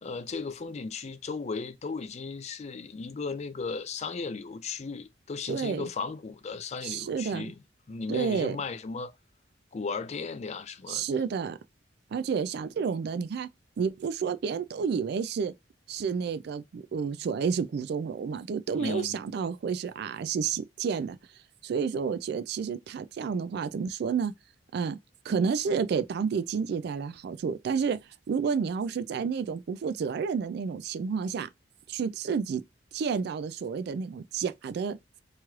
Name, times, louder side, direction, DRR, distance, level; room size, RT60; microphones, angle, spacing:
voice 1, 0.0-7.6 7.9-9.1 9.7-11.1 18.7-19.2, left 4 dB, 35° left, 0.4 m, -36 dB
voice 2, 5.5-5.8 6.8-7.5 8.1-8.6 10.9-11.6 12.1-13.5 13.8-15.5 15.9-21.2 21.6-24.3 24.7-25.0 25.3-28.0 28.3-31.5 31.9-32.6 32.9-35.2, right 6 dB, 60° right, 0.3 m, -30 dB
3.0 x 3.0 x 2.3 m
head